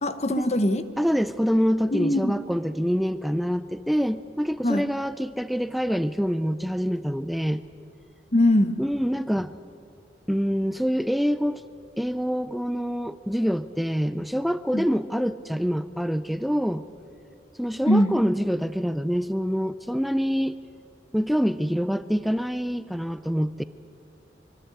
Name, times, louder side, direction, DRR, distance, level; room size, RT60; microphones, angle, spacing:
voice 1, 0.0-0.8 1.9-2.3 4.6-4.8 8.3-8.8 14.7-14.9 17.9-18.2, left 1 dB, 40° left, 11 dB, 1.0 m, -21 dB
voice 2, 1.0-7.6 8.8-9.5 10.3-11.6 12.0-16.9 17.6-20.6 21.1-23.6, equal, ahead, 13 dB, 0.4 m, -26 dB
24.0 x 14.0 x 8.1 m, 2.8 s
head